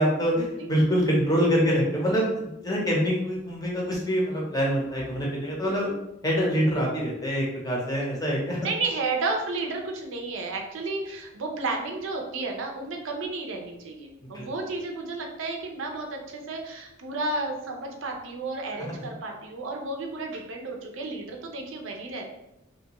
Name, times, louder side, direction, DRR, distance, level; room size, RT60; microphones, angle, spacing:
voice 1, 0.0-5.9 6.2-8.6 14.3-14.5, equal, 20° left, -3 dB, 0.6 m, -25 dB
voice 2, 5.6-6.0 8.0-8.2 8.6-22.2, right 3 dB, 80° right, 2 dB, 0.5 m, -32 dB
2.6 x 2.2 x 2.9 m, 0.86 s
head